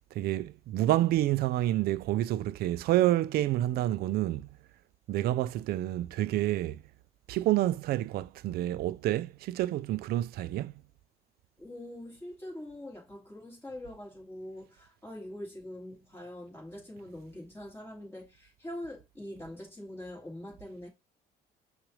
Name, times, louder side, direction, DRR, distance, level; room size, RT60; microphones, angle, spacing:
voice 1, 0.1-4.6 5.1-6.8 7.3-10.7, right 14 dB, 65° right, 0.4 m, -28 dB
voice 2, 11.6-20.9, left 1 dB, 15° left, 2.4 m, -43 dB
6.0 x 2.5 x 3.1 m
cardioid pair, 110°, 17 cm